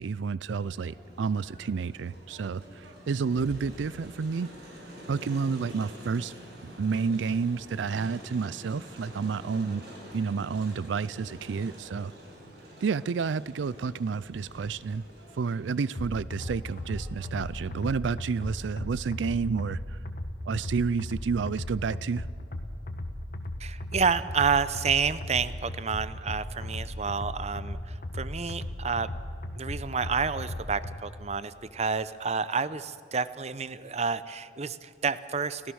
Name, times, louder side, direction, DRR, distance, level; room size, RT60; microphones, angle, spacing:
voice 1, 0.0-4.5 5.1-6.3 6.8-9.8 10.1-12.1 12.8-15.0 15.3-20.0 20.5-22.3, right 5 dB, 85° right, 19 dB, 0.4 m, -30 dB
Crowd, 0.5-18.8, equal, 60° right, 6.5 m, -48 dB
sound 1, 15.9-31.0, left 1 dB, 50° left, 1.5 m, -37 dB
voice 2, 23.6-29.1 29.6-35.7, right 5 dB, 35° right, 15 dB, 0.7 m, -29 dB
29.5 x 15.0 x 6.3 m, 2.4 s
head